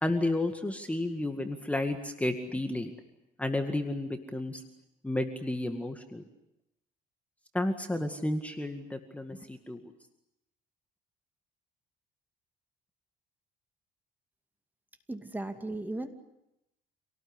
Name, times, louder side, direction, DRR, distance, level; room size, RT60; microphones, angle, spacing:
voice 1, 0.0-2.9 3.4-4.6 5.0-6.2 7.5-9.9, left 1 dB, 10° left, 6 dB, 2.0 m, -32 dB
voice 2, 15.1-16.1, right 2 dB, 10° right, 7 dB, 2.4 m, -36 dB
27.5 x 18.5 x 9.8 m, 0.86 s
cardioid pair, 110°, 17 cm